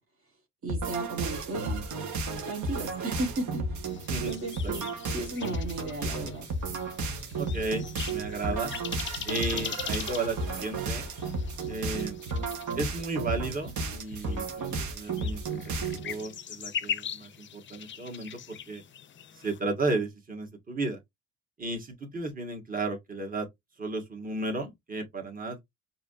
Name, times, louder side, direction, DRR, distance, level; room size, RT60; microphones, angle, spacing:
voice 1, 0.6-1.8 2.4-4.0 4.3-6.5, right 2 dB, 45° right, 1.4 m, -35 dB
sound 1, 0.7-16.2, right 3 dB, 70° right, 1.3 m, -33 dB
sound 2, 3.9-19.6, left 8 dB, 40° left, 0.5 m, -41 dB
sound 3, 5.8-6.0 6.2-6.4 6.7-6.9 7.3-7.5 7.8-8.0 8.2-8.4 8.7-8.9 9.2-9.4 9.8-10.0 10.3-10.5 10.7-10.9 11.2-11.4 11.6-11.8 12.3-12.5 12.7-12.9 13.2-13.4 13.7-13.9 14.1-14.3 14.7-14.9 15.2-15.4, right 3 dB, 90° right, 0.9 m, -45 dB
voice 2, 7.3-8.7 9.2-11.1 11.7-12.2 12.8-15.6 15.9-18.8 19.3-21.0 21.6-23.5 23.8-25.6, right 2 dB, 30° right, 1.6 m, -34 dB
4.8 x 2.8 x 2.5 m
cardioid pair, 90°, 30 cm